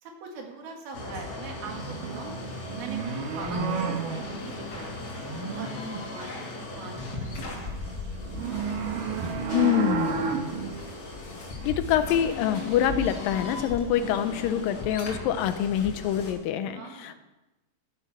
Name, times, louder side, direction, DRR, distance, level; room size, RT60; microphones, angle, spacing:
voice 1, 0.0-2.3 2.7-5.1 5.6-5.7 6.1-7.8 10.3-10.5 16.7-17.2, right 4 dB, 85° right, 2 dB, 3.9 m, -42 dB
sound 1, 0.9-16.3, left 3 dB, 40° left, 2.6 m, -38 dB
sound 2, 1.7-6.4 6.7-13.1, right 5 dB, 70° right, 2.8 m, -33 dB
voice 2, 9.5-10.4 11.6-17.2, left 10 dB, 80° left, 10 dB, 2.4 m, -26 dB
13.5 x 9.7 x 6.1 m, 1.0 s
omnidirectional pair, 4.1 m